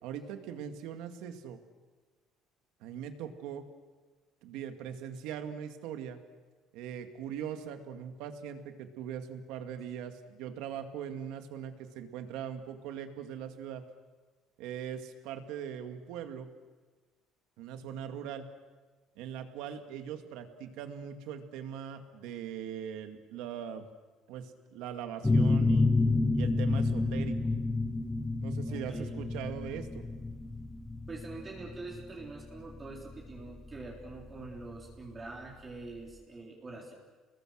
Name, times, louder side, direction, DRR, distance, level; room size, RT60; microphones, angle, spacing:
voice 1, 0.0-1.6 2.8-3.6 4.4-6.2 6.7-13.8 14.6-16.5 17.6-18.5 19.2-23.9 24.3-25.9 26.3-27.4 28.4-30.0, right 8 dB, 85° right, 7 dB, 2.2 m, -40 dB
sound 1, 25.2-34.6, left 3 dB, 10° left, 1.4 m, -29 dB
voice 2, 28.7-29.1 31.1-36.9, right 3 dB, 25° right, -2 dB, 3.7 m, -45 dB
30.0 x 21.0 x 6.5 m, 1.3 s
cardioid pair, 150°, 0 cm